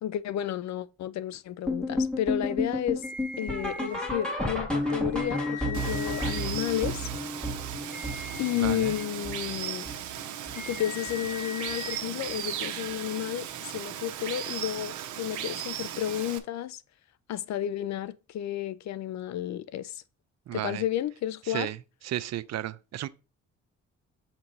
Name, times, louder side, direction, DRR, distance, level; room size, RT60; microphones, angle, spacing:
voice 1, 0.0-3.0 3.4-7.1 8.4-9.9 10.6-16.8 17.3-20.0 20.5-21.7, left 11 dB, 65° left, 0.5 m, -32 dB
sound 1, 1.7-10.8 11.1-11.4 11.7-11.8 12.3-12.4 12.9-13.0, left 1 dB, 5° left, 1.9 m, -32 dB
sound 2, 3.0-4.0 4.8-6.4 7.7-9.0 10.4-12.0, left 3 dB, 25° left, 3.5 m, -41 dB
Water, 5.7-16.4, right 11 dB, 75° right, 0.9 m, -37 dB
voice 2, 8.6-9.0 20.5-20.8 21.5-21.8 22.0-23.1, right 12 dB, 60° right, 0.5 m, -33 dB
7.4 x 2.9 x 5.3 m
cardioid pair, 90°, 30 cm